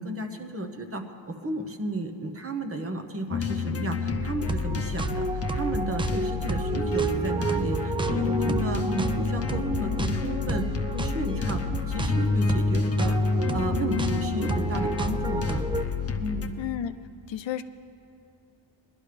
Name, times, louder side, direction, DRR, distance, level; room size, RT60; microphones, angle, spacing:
voice 1, 0.0-5.3 5.5-10.7 10.9-11.6 11.9-13.2 13.5-15.6 16.2-16.6, right 1 dB, 30° right, 5 dB, 1.0 m, -33 dB
sound 1, 3.3-16.5, left 4 dB, 30° left, 0.8 m, -29 dB
sound 2, 4.4-15.8, right 3 dB, 10° right, 0.3 m, -31 dB
voice 2, 16.6-16.9 17.3-17.6, left 10 dB, 65° left, 10 dB, 0.6 m, -31 dB
20.0 x 12.0 x 3.4 m, 2.7 s
cardioid pair, 95°, 48 cm